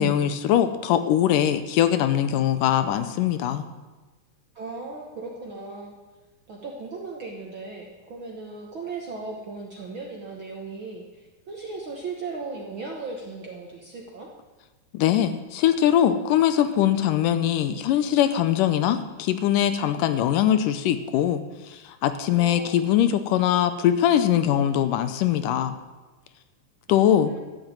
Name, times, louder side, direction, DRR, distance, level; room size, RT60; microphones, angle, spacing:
voice 1, 0.0-3.6 14.9-25.7 26.9-27.3, left 10 dB, 75° left, 10 dB, 2.1 m, -22 dB
voice 2, 4.5-5.9 6.5-14.3 22.3-22.8 26.9-27.4, right 3 dB, 55° right, 0 dB, 1.4 m, -37 dB
13.0 x 7.7 x 8.9 m, 1.2 s
omnidirectional pair, 4.0 m